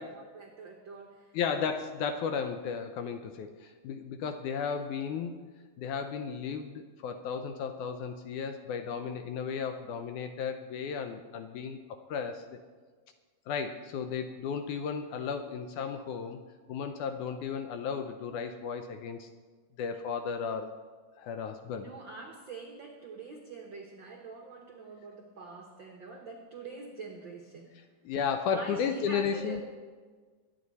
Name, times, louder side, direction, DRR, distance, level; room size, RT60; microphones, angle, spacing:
voice 1, 0.1-1.3 21.8-27.8 28.5-29.6, right 4 dB, 75° right, 2 dB, 1.0 m, -45 dB
voice 2, 1.3-5.4 5.8-11.8 12.1-12.6 13.5-16.4 16.7-19.3 19.8-20.7 21.2-21.9 28.1-29.6, left 6 dB, 75° left, 7 dB, 1.9 m, -34 dB
23.5 x 9.9 x 4.1 m, 1.5 s
omnidirectional pair, 4.0 m